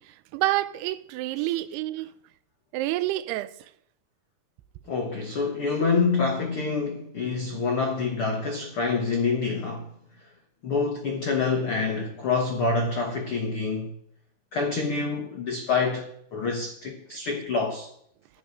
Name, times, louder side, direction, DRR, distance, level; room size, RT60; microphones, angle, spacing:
voice 1, 0.0-2.1 2.7-3.5 17.1-17.2, right 16 dB, 85° right, 2.6 m, -28 dB
voice 2, 4.9-9.9 10.6-13.9 14.5-17.9, left 4 dB, 90° left, 1.2 m, -27 dB
12.5 x 10.0 x 5.1 m
omnidirectional pair, 4.6 m